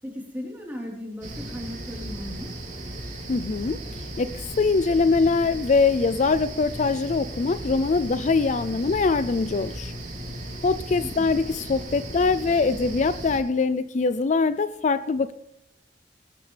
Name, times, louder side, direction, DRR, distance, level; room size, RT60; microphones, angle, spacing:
voice 1, 0.0-2.6 11.0-11.4, left 1 dB, 10° right, -1 dB, 3.8 m, -37 dB
sound 1, 1.2-13.4, right 1 dB, 45° right, 3.2 m, -36 dB
voice 2, 3.3-9.9 10.6-15.3, left 4 dB, 40° left, 14 dB, 0.4 m, -23 dB
20.0 x 13.0 x 3.3 m, 0.86 s
head